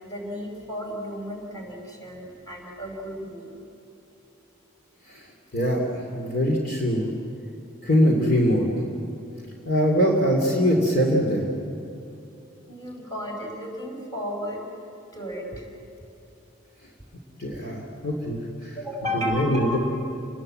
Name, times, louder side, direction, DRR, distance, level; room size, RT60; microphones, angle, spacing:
voice 1, 0.0-3.6 12.7-14.6 15.1-15.7 17.5-17.6 18.8-19.8, equal, 20° left, -1 dB, 5.2 m, -33 dB
voice 2, 5.5-7.1 7.8-8.7 9.6-11.4 17.4-18.8 19.1-19.8, equal, 50° left, 0 dB, 2.9 m, -22 dB
29.5 x 20.0 x 7.7 m, 2.7 s
head